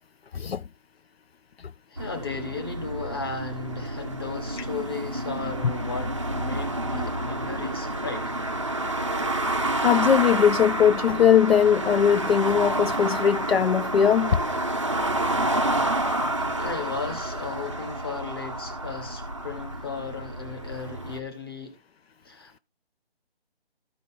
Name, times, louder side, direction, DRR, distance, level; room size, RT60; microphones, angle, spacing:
voice 1, 1.9-8.3 16.6-21.8 22.2-22.6, left 5 dB, 25° left, 1.2 m, -35 dB
sound 1, 2.0-21.2, right 1 dB, 30° right, 0.5 m, -29 dB
voice 2, 9.8-14.4, left 8 dB, 75° left, 0.5 m, -20 dB
14.0 x 5.2 x 3.6 m
hypercardioid pair, 175°, 31 cm